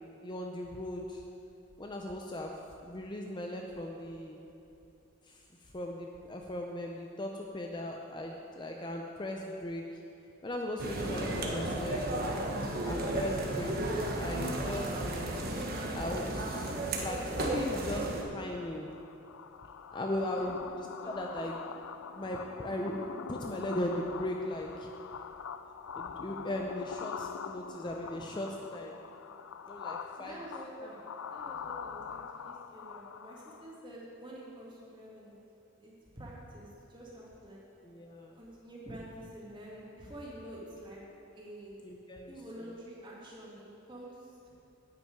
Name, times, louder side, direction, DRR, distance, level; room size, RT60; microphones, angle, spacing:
voice 1, 0.2-1.2 1.8-2.5 2.8-4.4 5.2-9.8 10.4-12.4 12.9-15.3 15.9-16.7 17.0-18.9 19.9-21.6 22.1-24.9 26.0-29.0 29.6-30.4 30.8-30.9 37.8-38.4 41.8-42.4, left 1 dB, 20° left, 1 dB, 0.6 m, -38 dB
sound 1, 10.8-18.2, right 1 dB, 45° right, 1.1 m, -33 dB
sound 2, 18.5-33.8, left 6 dB, 85° left, 0.4 m, -44 dB
voice 2, 30.2-31.0 31.3-35.4 35.8-37.6 38.3-41.0 41.3-41.7 42.3-44.3, right 1 dB, 25° right, -5 dB, 2.3 m, -48 dB
9.9 x 6.2 x 8.7 m, 2.8 s
head